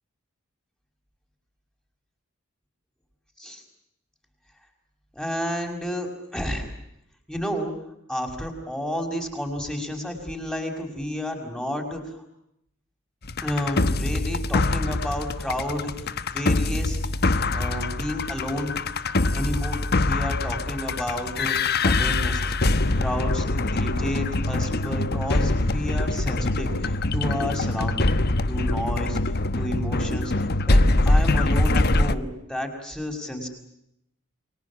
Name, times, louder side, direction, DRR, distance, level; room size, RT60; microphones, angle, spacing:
voice 1, 5.1-6.7 7.3-7.7 8.1-12.2 13.4-15.9 16.3-17.0 17.5-18.7 19.3-22.5 22.9-28.1 28.5-29.2 29.6-33.5, left 1 dB, 5° left, 3 dB, 5.9 m, -31 dB
sound 1, 13.2-32.1, left 2 dB, 50° left, 1.2 m, -24 dB
29.5 x 24.0 x 7.3 m, 0.79 s
head